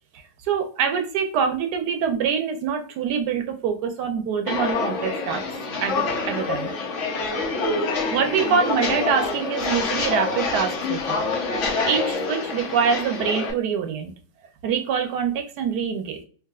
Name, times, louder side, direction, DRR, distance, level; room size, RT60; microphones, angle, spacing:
voice 1, 0.4-5.4 5.8-6.7 8.1-11.2 11.8-14.1 14.6-16.2, right 7 dB, 75° right, 6 dB, 1.2 m, -25 dB
Walk footsteps, 4.5-13.5, left 4 dB, 55° left, 1.0 m, -26 dB
4.7 x 2.5 x 2.3 m, 0.41 s
omnidirectional pair, 1.8 m